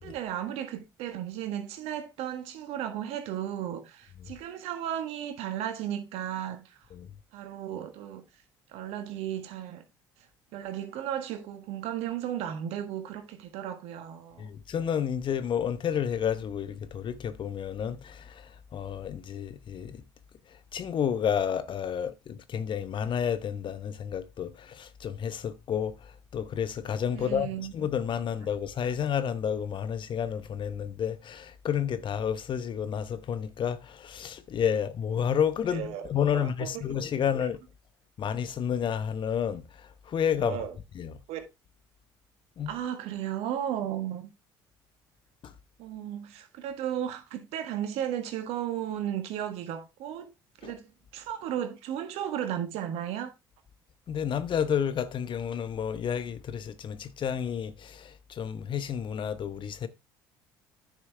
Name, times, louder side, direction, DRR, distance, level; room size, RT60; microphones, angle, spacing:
voice 1, 0.0-6.8 7.3-8.2 8.7-9.8 10.5-14.5 27.1-27.7 35.7-36.7 40.4-40.7 41.3-41.4 42.7-44.3 45.8-50.3 50.6-50.9 51.1-53.3, right 10 dB, 65° right, 1.6 m, -34 dB
voice 2, 14.4-20.0 20.7-37.6 38.2-39.6 40.1-40.6 40.9-41.2 42.6-42.7 45.4-45.5 50.6-50.7 54.1-59.9, left 8 dB, 45° left, 1.0 m, -30 dB
10.0 x 6.1 x 3.4 m
hypercardioid pair, 60°, 11 cm